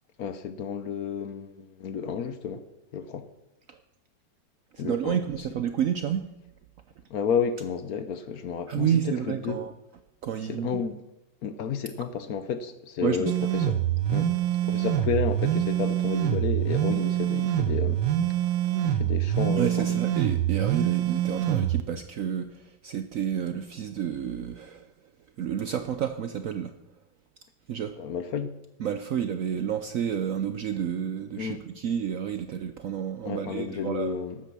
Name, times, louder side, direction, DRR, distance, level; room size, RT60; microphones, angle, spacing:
voice 1, 0.2-2.6 2.9-3.3 4.8-5.2 7.1-9.6 10.4-11.0 11.4-13.8 14.1-14.3 14.6-18.0 18.8-20.0 28.0-28.6 31.4-31.6 33.2-34.4, left 7 dB, 65° left, 1.1 m, -31 dB
voice 2, 4.7-6.3 8.7-9.7 10.2-10.8 13.0-13.3 19.6-24.9 25.4-26.7 27.7-27.9 28.8-34.1, right 9 dB, 65° right, 0.8 m, -30 dB
sound 1, 13.3-21.8, right 11 dB, 85° right, 1.4 m, -25 dB
12.5 x 8.6 x 6.0 m
omnidirectional pair, 2.0 m